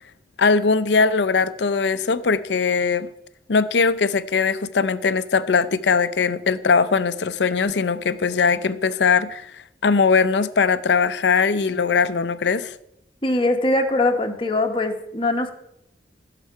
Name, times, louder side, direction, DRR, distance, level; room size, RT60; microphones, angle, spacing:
voice 1, 0.4-3.1 3.5-9.5 9.8-12.7, left 5 dB, 80° left, 14 dB, 0.6 m, -20 dB
voice 2, 13.2-15.5, left 2 dB, 30° left, 4 dB, 1.2 m, -21 dB
16.0 x 6.8 x 4.8 m, 0.78 s
head